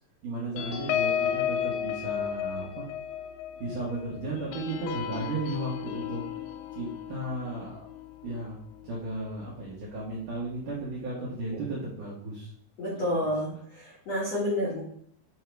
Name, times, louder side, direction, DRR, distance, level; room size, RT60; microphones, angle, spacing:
voice 1, 0.2-2.9 3.6-6.2 6.7-7.8 8.2-8.6 8.8-12.5 13.0-13.2, right 2 dB, 65° right, -5 dB, 2.1 m, -35 dB
sound 1, 0.6-9.5 9.9-10.1 10.4-10.7, left 9 dB, 85° left, 2.9 m, -34 dB
voice 2, 12.8-14.8, left 1 dB, 60° left, -7 dB, 1.8 m, -29 dB
9.1 x 3.7 x 4.5 m, 0.65 s
omnidirectional pair, 5.4 m